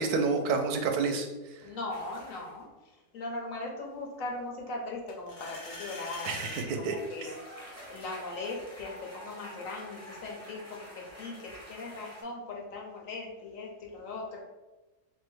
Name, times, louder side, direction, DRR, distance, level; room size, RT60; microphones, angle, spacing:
voice 1, 0.0-1.7 6.2-7.3, right 4 dB, 90° right, 4 dB, 1.2 m, -30 dB
voice 2, 1.6-2.7 3.1-14.4, left 2 dB, 65° left, -1 dB, 1.2 m, -39 dB
sound 1, 1.9-2.6 6.0-12.2, equal, 15° left, 0.9 m, -48 dB
sound 2, 5.1-6.7, left 2 dB, 40° left, 0.9 m, -42 dB
3.5 x 2.8 x 4.5 m, 1.1 s
omnidirectional pair, 1.5 m